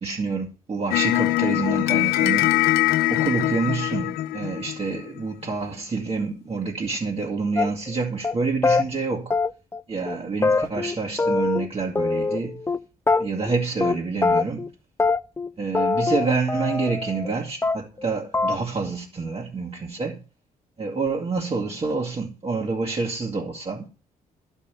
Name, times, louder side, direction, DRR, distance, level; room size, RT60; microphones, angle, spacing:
voice 1, 0.0-2.7 3.1-9.3 9.9-12.6 13.2-14.6 15.6-20.2 20.8-23.9, right 4 dB, 40° right, 2.1 m, -27 dB
sound 1, 0.9-5.2, left 15 dB, 85° left, 0.7 m, -22 dB
sound 2, 7.6-7.9 8.2-8.3 8.6-8.8 9.3-9.8 10.1-10.2 10.4-11.7 11.9-12.8 13.1-13.5 13.8-14.0 14.2-14.7 15.0-15.5 15.7-17.3 17.6-18.0 18.3-18.6, left 4 dB, 15° left, 0.4 m, -23 dB
11.5 x 5.5 x 6.7 m
supercardioid pair, 60°, 15 cm